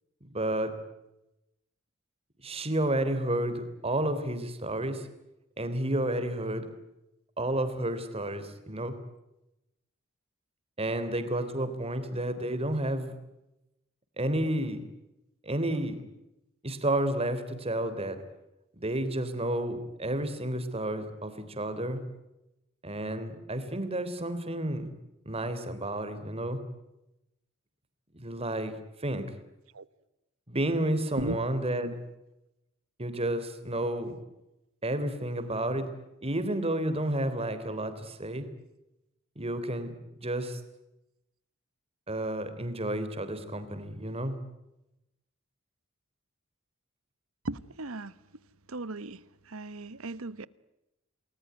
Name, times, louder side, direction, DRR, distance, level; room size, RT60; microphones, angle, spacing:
voice 1, 0.2-0.8 2.4-5.1 5.6-6.7 7.4-8.9 10.8-13.1 14.2-14.8 15.4-16.0 16.6-18.2 18.7-22.0 22.8-24.9 25.2-26.6 28.1-28.7 29.0-29.2 30.5-31.9 33.0-34.1 34.8-35.9 36.2-38.5 39.3-39.9 40.2-40.6 42.1-44.3, right 1 dB, 30° right, 3.3 m, -31 dB
voice 2, 47.4-48.2 48.7-50.5, right 2 dB, 75° right, 1.1 m, -37 dB
29.0 x 20.0 x 9.4 m
head